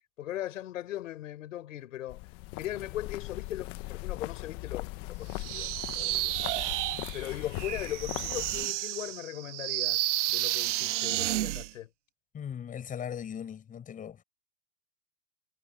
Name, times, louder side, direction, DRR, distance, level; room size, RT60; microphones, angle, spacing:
voice 1, 0.2-2.2 2.6-6.3 7.1-11.9, left 13 dB, 75° left, 6.5 m, -39 dB
sound 1, 2.1-8.7, left 21 dB, 35° left, 1.1 m, -39 dB
sound 2, 5.4-11.7, right 17 dB, 65° right, 1.8 m, -31 dB
voice 2, 12.3-14.2, left 8 dB, 20° left, 7.4 m, -39 dB
supercardioid pair, 145°, 39 cm